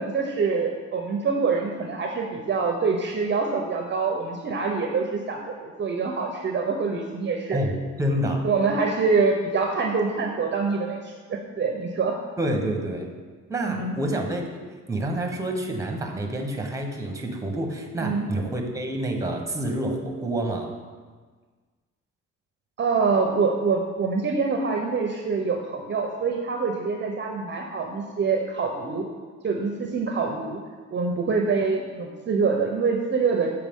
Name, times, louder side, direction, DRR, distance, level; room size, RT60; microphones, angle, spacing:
voice 1, 0.0-7.6 8.4-12.2 13.7-14.0 18.0-18.3 22.8-29.0 29.4-30.6 30.9-33.5, right 4 dB, 40° right, 2 dB, 0.6 m, -25 dB
voice 2, 7.5-8.4 12.4-13.1 13.5-14.5 14.9-20.7, right 1 dB, 10° right, 2 dB, 1.0 m, -28 dB
7.3 x 4.7 x 3.6 m, 1.5 s
cardioid pair, 90°, 30 cm